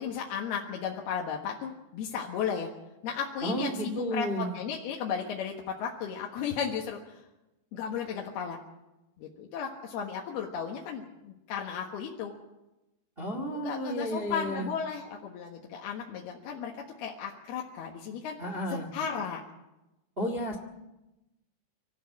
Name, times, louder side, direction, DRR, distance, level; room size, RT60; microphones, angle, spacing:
voice 1, 0.0-2.7 3.0-7.2 7.7-8.6 9.2-12.3 13.3-16.7 17.0-18.4 18.9-19.4, left 7 dB, 70° left, -1 dB, 3.3 m, -35 dB
voice 2, 3.4-4.5 13.2-14.7 18.4-18.9 20.2-20.6, right 1 dB, 75° right, 4 dB, 0.5 m, -32 dB
25.5 x 14.0 x 8.6 m, 0.98 s
omnidirectional pair, 5.0 m